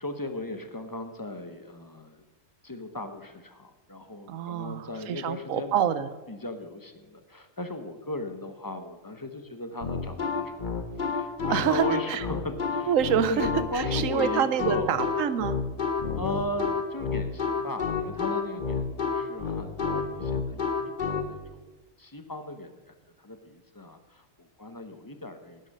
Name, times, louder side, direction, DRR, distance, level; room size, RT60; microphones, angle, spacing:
voice 1, 0.0-2.2 2.6-5.8 6.3-10.7 11.0-12.9 13.3-15.0 16.1-21.6 22.0-25.6, left 1 dB, 20° left, 7 dB, 0.8 m, -37 dB
voice 2, 4.3-6.1 11.4-12.2 12.9-13.5 13.7-15.6, right 9 dB, 85° right, 14 dB, 1.1 m, -27 dB
sound 1, 9.8-21.3, left 5 dB, 40° left, 1.1 m, -29 dB
11.5 x 9.7 x 6.5 m, 1.2 s
omnidirectional pair, 1.4 m